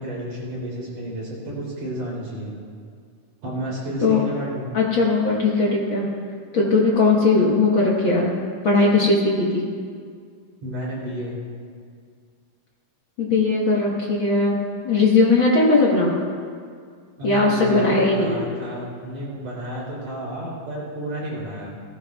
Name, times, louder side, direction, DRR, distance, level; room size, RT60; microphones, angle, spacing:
voice 1, 0.0-2.5 3.4-4.7 10.6-11.4 17.2-21.7, right 1 dB, 55° right, -5 dB, 4.4 m, -31 dB
voice 2, 4.7-6.1 6.5-8.3 8.6-9.6 13.2-14.6 14.8-16.1 17.2-18.3, left 3 dB, 55° left, -4 dB, 1.4 m, -19 dB
18.0 x 15.5 x 2.4 m, 2.1 s
omnidirectional pair, 3.9 m